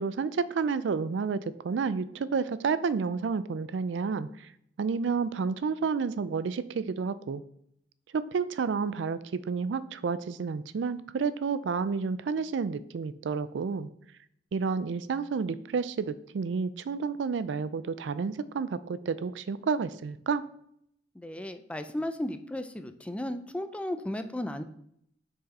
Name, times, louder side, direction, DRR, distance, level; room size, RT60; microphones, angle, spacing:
voice 1, 0.0-4.5 4.8-7.4 8.1-13.9 14.5-20.4, right 5 dB, 80° right, 15 dB, 0.4 m, -30 dB
voice 2, 21.2-24.6, left 1 dB, 5° left, 9 dB, 0.4 m, -35 dB
6.2 x 4.8 x 4.1 m, 0.72 s
head